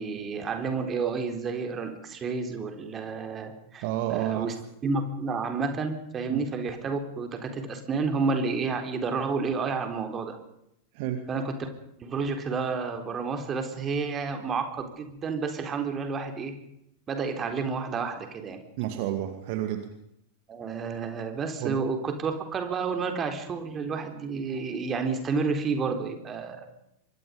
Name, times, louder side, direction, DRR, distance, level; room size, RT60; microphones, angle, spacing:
voice 1, 0.0-3.8 4.1-4.5 4.8-10.3 11.3-11.7 12.0-16.5 17.1-18.6 20.5-26.7, right 4 dB, 25° right, 6 dB, 4.0 m, -30 dB
voice 2, 3.8-4.6 6.3-6.4 10.9-11.3 18.8-19.9 21.6-21.8, right 12 dB, 45° right, 7 dB, 2.1 m, -30 dB
25.5 x 23.0 x 5.3 m, 0.81 s
figure-of-eight pair, 90°, 0 cm